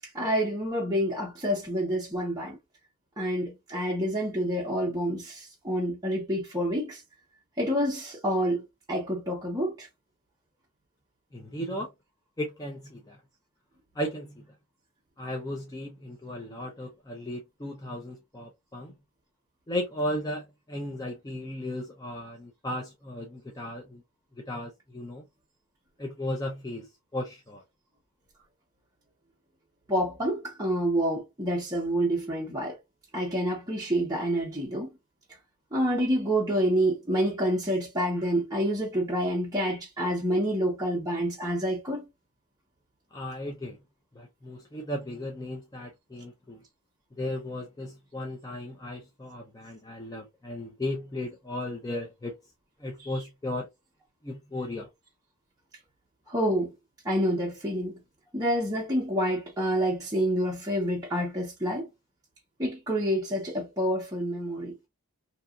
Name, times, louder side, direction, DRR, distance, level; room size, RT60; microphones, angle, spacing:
voice 1, 0.1-2.6 3.2-7.0 7.6-8.6 8.9-9.9 29.9-32.8 33.1-34.9 35.7-42.1 56.3-56.7 57.0-58.0 58.3-61.9 62.6-64.7, equal, 15° right, 0.7 m, -28 dB
voice 2, 11.3-11.9 12.4-13.2 13.9-14.5 15.2-18.9 19.7-24.0 24.4-25.2 26.0-26.9 27.1-27.6 43.1-43.8 44.1-46.6 47.2-52.4 52.8-53.7 54.2-54.9, left 1 dB, 15° left, 0.4 m, -35 dB
2.8 x 2.3 x 2.4 m
head